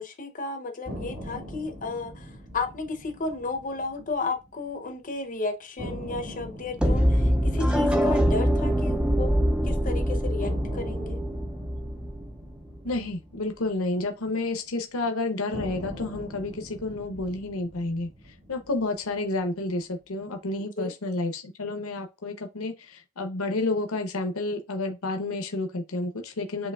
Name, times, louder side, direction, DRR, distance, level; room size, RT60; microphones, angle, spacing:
voice 1, 0.0-9.3 9.6-11.2 20.8-20.9, left 3 dB, 35° left, 0.7 m, -33 dB
sound 1, 0.9-4.9 5.2-5.3 5.8-9.9 10.4-14.8 15.5-19.9, equal, 40° right, 1.5 m, -42 dB
sound 2, 6.8-12.8, equal, 5° right, 0.4 m, -24 dB
voice 2, 12.8-18.1 18.5-26.7, left 2 dB, 70° left, 0.8 m, -30 dB
7.1 x 3.0 x 2.3 m
head